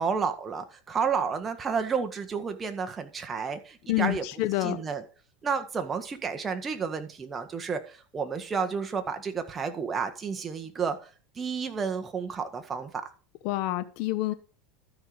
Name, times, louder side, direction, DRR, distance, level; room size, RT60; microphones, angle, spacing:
voice 1, 0.0-4.2 4.6-5.0 5.4-11.1 11.3-12.9, right 6 dB, 25° right, 6 dB, 1.6 m, -31 dB
voice 2, 3.9-4.8 13.4-14.3, left 16 dB, 65° left, 11 dB, 1.0 m, -28 dB
12.5 x 5.8 x 5.1 m, 0.38 s
supercardioid pair, 105°, 0 cm